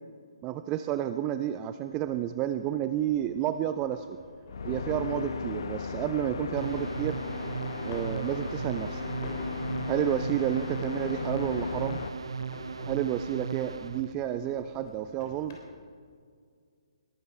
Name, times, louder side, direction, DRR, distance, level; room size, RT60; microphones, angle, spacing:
voice 1, 0.4-4.2 4.6-7.2 7.8-9.0 9.9-12.0 12.9-15.6, right 11 dB, 20° right, 10 dB, 0.4 m, -30 dB
sound 1, 1.9-15.6, left 2 dB, 40° left, 3.5 m, -49 dB
sound 2, 4.5-12.1, left 4 dB, 55° left, 1.0 m, -36 dB
sound 3, 6.6-14.1, right 6 dB, 65° right, 0.7 m, -37 dB
20.5 x 12.0 x 4.7 m, 2.1 s
figure-of-eight pair, 135°, 3 cm